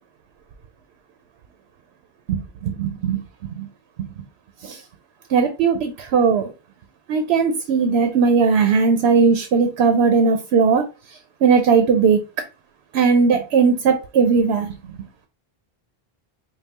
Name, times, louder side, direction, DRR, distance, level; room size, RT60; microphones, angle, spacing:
voice 1, 2.3-3.2 3.6-3.7 4.6-4.8 5.3-6.5 7.1-10.8 11.4-12.2 12.9-14.7, right 5 dB, 85° right, 7 dB, 0.9 m, -18 dB
5.3 x 2.3 x 2.9 m, 0.30 s
omnidirectional pair, 1.1 m